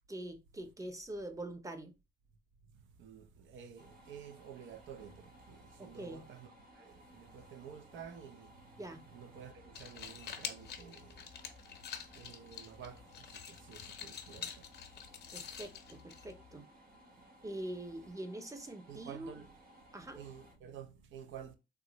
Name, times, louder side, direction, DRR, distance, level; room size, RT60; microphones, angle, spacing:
voice 1, 0.1-1.9 5.8-6.2 8.8-9.0 15.3-16.7 17.4-19.3 19.9-20.2, right 1 dB, 15° right, 0.6 m, -44 dB
voice 2, 3.0-8.7 9.1-11.3 12.1-14.7 18.9-19.5 20.1-21.5, right 8 dB, 75° right, 0.6 m, -51 dB
sound 1, 3.8-20.5, equal, 45° right, 1.1 m, -60 dB
sound 2, 9.6-16.6, left 7 dB, 60° left, 0.6 m, -47 dB
3.6 x 2.1 x 2.9 m
cardioid pair, 90°, 20 cm